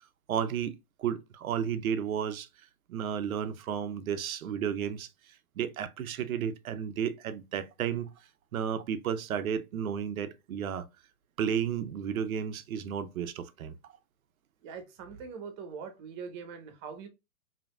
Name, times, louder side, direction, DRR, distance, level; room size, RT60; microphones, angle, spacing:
voice 1, 0.3-2.5 2.9-5.1 5.6-8.1 8.5-10.9 11.4-13.7, right 8 dB, 85° right, 0.7 m, -32 dB
voice 2, 14.6-17.1, right 6 dB, 35° right, 1.0 m, -42 dB
5.0 x 2.9 x 2.3 m
hypercardioid pair, 130°, 41 cm